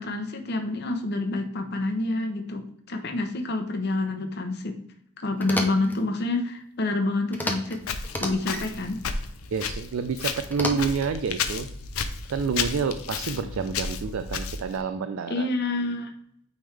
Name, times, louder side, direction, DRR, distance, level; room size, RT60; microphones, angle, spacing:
voice 1, 0.0-4.8 5.2-7.8 8.2-9.0 15.3-16.1, left 2 dB, 50° left, 5 dB, 0.9 m, -28 dB
sound 1, 5.4-6.0 7.3-7.8 8.0-8.7 10.5-11.1, left 1 dB, 10° left, 0.6 m, -31 dB
Walk footsteps, 7.8-14.8, left 6 dB, 90° left, 0.6 m, -33 dB
voice 2, 9.5-11.7 12.3-15.5, right 5 dB, 70° right, 9 dB, 0.4 m, -28 dB
8.9 x 3.5 x 3.3 m, 0.70 s
head